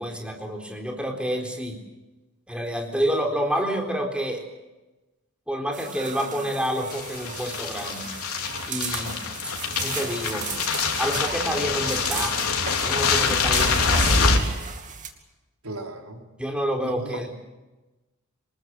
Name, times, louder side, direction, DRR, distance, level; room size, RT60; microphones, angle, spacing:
voice 1, 0.0-1.8 2.5-4.4 5.5-8.1 8.7-9.2 9.8-10.5 11.0-12.4 12.8-14.6 16.4-17.3, equal, 5° right, 2 dB, 4.0 m, -28 dB
sound 1, 5.7-15.1, right 7 dB, 35° right, 2.6 m, -36 dB
sound 2, 6.9-14.4, left 4 dB, 90° left, 3.5 m, -25 dB
voice 2, 15.6-16.3 16.8-17.3, right 2 dB, 90° right, 3 dB, 4.1 m, -36 dB
26.5 x 20.5 x 8.1 m, 1.1 s
head